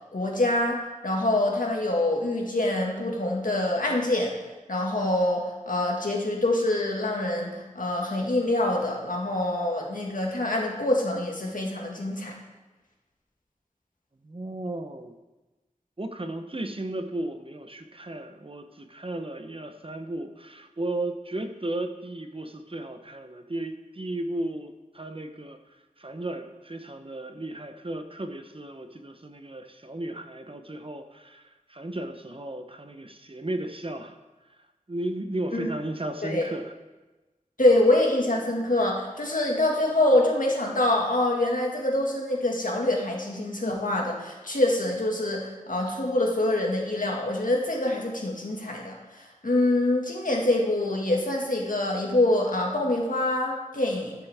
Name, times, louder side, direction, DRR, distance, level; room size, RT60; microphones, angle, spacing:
voice 1, 0.1-4.3 4.7-12.3 35.5-35.7 36.2-36.5 37.6-54.1, left 1 dB, 80° left, -1 dB, 1.8 m, -25 dB
voice 2, 14.2-15.2 16.0-25.6 26.0-34.2 34.9-36.7, right 1 dB, 40° right, 7 dB, 0.8 m, -35 dB
13.5 x 7.0 x 3.5 m, 1.2 s
wide cardioid pair, 45°, 14 cm